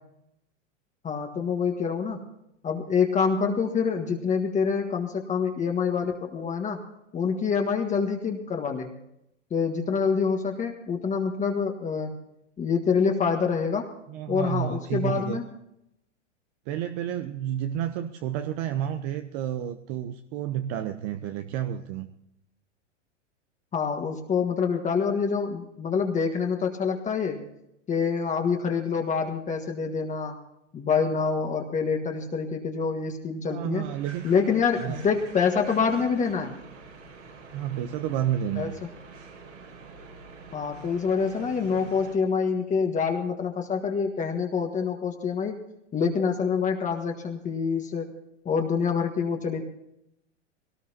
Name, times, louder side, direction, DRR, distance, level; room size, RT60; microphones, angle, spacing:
voice 1, 1.0-2.2 2.6-6.8 7.1-8.9 9.5-12.1 12.6-13.9 14.3-15.4 23.7-27.4 27.9-30.3 30.7-33.9 34.2-36.5 38.5-38.7 40.5-45.6 45.9-48.1 48.4-49.6, left 5 dB, 20° left, 3 dB, 1.6 m, -26 dB
voice 2, 14.1-15.4 16.7-22.1 33.5-34.3 34.8-35.0 37.5-38.7, right 10 dB, 45° right, 8 dB, 0.9 m, -30 dB
sound 1, 33.8-42.1, right 4 dB, 85° right, 5.8 m, -46 dB
20.0 x 18.5 x 2.9 m, 0.80 s
hypercardioid pair, 115°, 36 cm